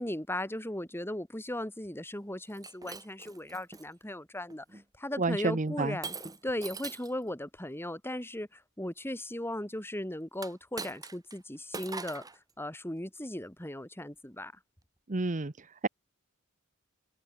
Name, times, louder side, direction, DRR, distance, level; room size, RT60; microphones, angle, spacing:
voice 1, 0.0-6.2 6.4-12.2 12.6-14.5, left 1 dB, 10° left, 5.5 m, -37 dB
Shatter, 2.5-3.9 4.5-4.8 6.0-7.2 10.3-11.4 11.7-12.4, right 4 dB, 15° right, 2.0 m, -42 dB
voice 2, 5.2-6.0 15.1-15.5, right 3 dB, 35° right, 0.9 m, -29 dB
open air
head